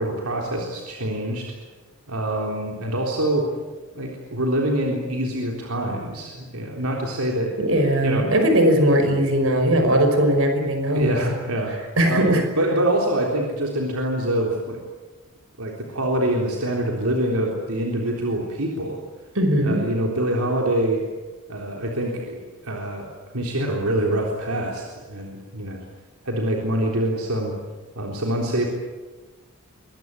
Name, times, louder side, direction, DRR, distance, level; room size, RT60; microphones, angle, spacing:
voice 1, 0.0-1.5 2.1-3.5 3.9-7.5 8.0-8.3 10.9-11.7 12.1-14.8 15.6-19.0 19.6-21.0 21.5-22.4 22.6-23.1 23.3-24.8 25.1-25.8 26.2-27.5 28.0-28.7, right 1 dB, 85° right, 0 dB, 3.7 m, -25 dB
voice 2, 7.6-11.1 12.0-12.4 19.4-19.8, right 1 dB, 65° right, 5 dB, 5.4 m, -19 dB
24.0 x 20.0 x 9.7 m, 1.3 s
head